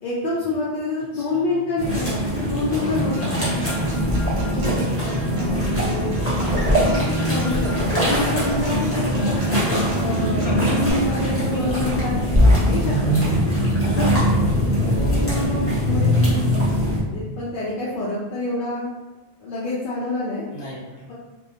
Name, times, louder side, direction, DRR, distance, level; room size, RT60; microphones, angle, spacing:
voice 1, 0.0-3.5 4.5-4.7 5.0-9.4 9.9-13.3 13.8-16.4 17.1-18.9 19.4-20.4, left 2 dB, 60° left, -8 dB, 0.7 m, -27 dB
voice 2, 1.1-1.6 3.5-4.0 5.0-5.7 5.9-6.1 10.4-10.8 11.2-11.7 14.9-15.4 20.5-21.0, equal, 85° left, -8 dB, 1.3 m, -36 dB
sound 1, 1.8-17.0, equal, 15° left, 0.6 m, -22 dB
Acoustic guitar, 2.9-10.9, equal, 85° right, 0.9 m, -28 dB
2.6 x 2.0 x 2.7 m, 1.1 s
omnidirectional pair, 1.1 m